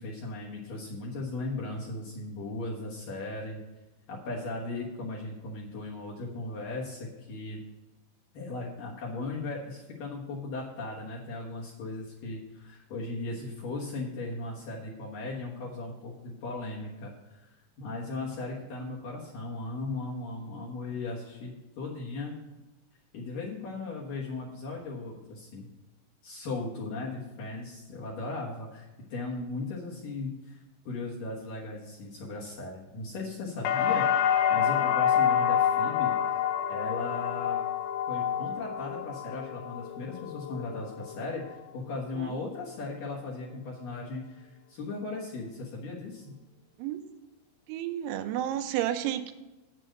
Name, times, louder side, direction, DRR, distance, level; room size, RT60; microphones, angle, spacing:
voice 1, 0.0-3.6 4.1-7.6 8.3-17.5 17.8-22.4 23.1-25.7 26.2-30.6 30.9-36.2 36.7-37.6 38.1-46.3, left 3 dB, 65° left, -3 dB, 2.3 m, -37 dB
sound 1, 33.6-41.6 41.9-42.6, left 9 dB, 90° left, 3.2 m, -28 dB
voice 2, 47.7-49.3, right 11 dB, 85° right, 8 dB, 3.0 m, -31 dB
8.5 x 7.7 x 6.4 m, 1.1 s
omnidirectional pair, 5.5 m